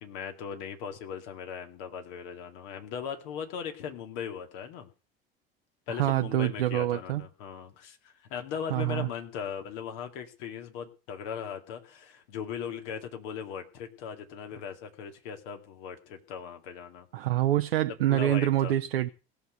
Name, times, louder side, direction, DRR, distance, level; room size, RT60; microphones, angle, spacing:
voice 1, 0.0-4.9 5.9-17.1 17.9-18.7, left 7 dB, 65° left, 2.3 m, -39 dB
voice 2, 6.0-7.2 8.7-9.1 17.1-19.1, right 13 dB, 80° right, 0.7 m, -26 dB
17.0 x 6.7 x 7.8 m
hypercardioid pair, 70°, 29 cm